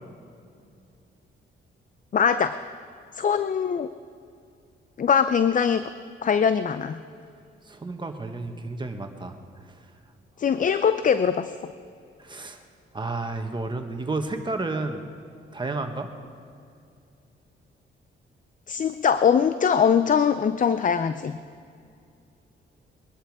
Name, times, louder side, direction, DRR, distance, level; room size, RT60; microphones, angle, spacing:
voice 1, 2.1-2.6 3.1-3.9 5.0-5.9 6.2-7.0 10.4-11.5 18.7-21.4, left 7 dB, 40° left, 12 dB, 0.5 m, -22 dB
voice 2, 7.6-9.4 9.7-9.8 12.2-12.6 12.9-15.0 15.5-16.1, right 3 dB, 20° right, 5 dB, 1.4 m, -31 dB
22.0 x 11.5 x 4.8 m, 2.5 s
cardioid pair, 100°, 21 cm